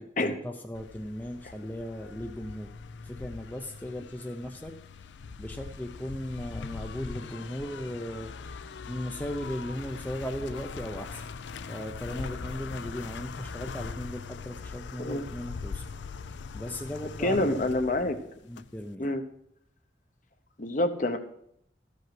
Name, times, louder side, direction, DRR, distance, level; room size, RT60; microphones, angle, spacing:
voice 1, 0.2-2.7 3.0-4.7 5.4-11.3 11.7-15.8 16.2-18.1 18.4-19.2, equal, 10° left, 4 dB, 0.5 m, -37 dB
sound 1, 0.7-18.9, left 5 dB, 80° left, 0.4 m, -41 dB
voice 2, 17.2-18.2 19.0-19.2 20.6-21.2, left 2 dB, 45° left, 8 dB, 0.8 m, -27 dB
13.0 x 5.4 x 5.9 m, 0.73 s
head